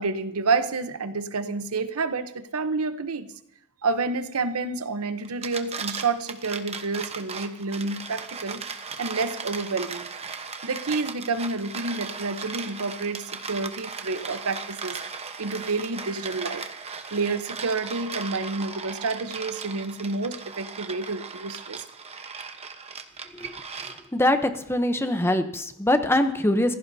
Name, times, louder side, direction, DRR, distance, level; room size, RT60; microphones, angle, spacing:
voice 1, 0.0-3.3 3.8-8.6 9.0-10.1 10.6-15.0 15.4-16.6 17.1-21.8, right 3 dB, 85° right, 11 dB, 0.8 m, -29 dB
sound 1, 5.2-24.3, right 5 dB, 30° right, 1.0 m, -37 dB
voice 2, 24.1-26.8, left 1 dB, 10° left, 8 dB, 0.8 m, -23 dB
26.0 x 16.5 x 2.7 m, 0.76 s
head